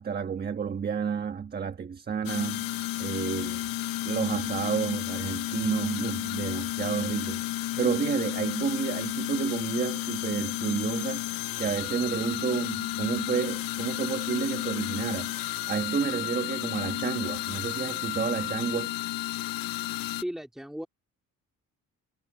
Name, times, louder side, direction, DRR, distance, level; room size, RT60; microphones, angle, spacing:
voice 1, 0.0-2.7 3.0-3.7 4.0-11.3 11.6-18.9, right 6 dB, 30° right, 1.3 m, -30 dB
sound 1, 2.3-20.2, left 15 dB, 80° left, 0.7 m, -32 dB
voice 2, 20.2-20.9, equal, ahead, 2.3 m, -35 dB
cardioid pair, 170°, 34 cm